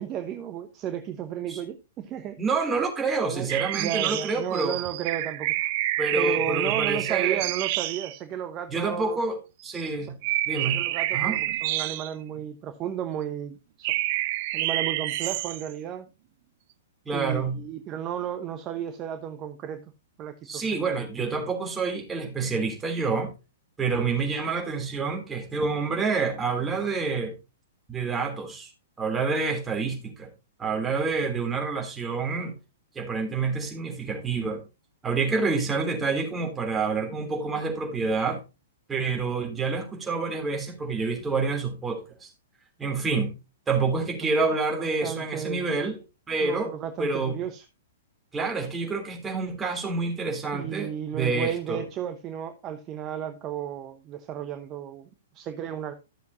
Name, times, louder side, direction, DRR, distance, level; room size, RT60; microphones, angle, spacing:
voice 1, 0.0-2.4 3.3-5.5 6.2-9.2 10.7-13.9 14.5-16.1 17.1-19.9 20.2-20.8 44.2-44.3 45.0-45.7 46.4-47.6 50.5-55.1 55.3-55.9, right 9 dB, 30° right, 1.0 m, -34 dB
voice 2, 2.4-4.8 6.0-7.4 8.7-9.4 9.6-10.1 10.4-10.8 11.1-11.4 17.0-17.6 20.4-23.3 23.8-27.3 27.9-28.7 29.0-30.3 30.6-32.5 32.9-34.6 35.0-38.4 38.9-42.3 42.8-43.4 43.7-46.0 46.3-46.7 47.0-47.4 48.3-51.8, right 4 dB, 15° right, 3.1 m, -28 dB
sound 1, 3.5-8.2 9.7-9.9 10.2-12.4 13.8-15.7, right 16 dB, 45° right, 0.6 m, -28 dB
13.5 x 7.1 x 2.7 m
figure-of-eight pair, 110°, 0 cm